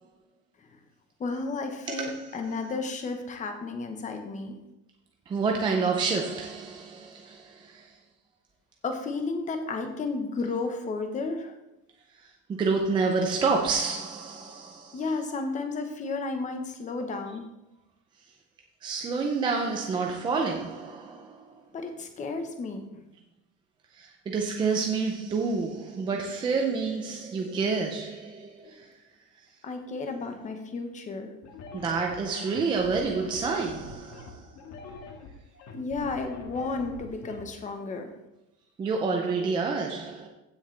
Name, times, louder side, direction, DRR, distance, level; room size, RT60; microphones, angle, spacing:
voice 1, 1.2-4.6 8.8-11.5 14.9-17.5 21.7-23.0 28.6-28.7 29.6-31.3 35.7-38.1, left 3 dB, 15° left, 1.0 m, -33 dB
voice 2, 1.9-2.2 5.3-7.9 12.5-15.0 18.8-21.4 24.0-28.9 31.7-34.4 38.8-40.3, right 4 dB, 10° right, 0.4 m, -28 dB
sound 1, 31.4-37.4, left 3 dB, 35° left, 1.7 m, -44 dB
15.5 x 6.5 x 3.3 m
cardioid pair, 170°, 45 cm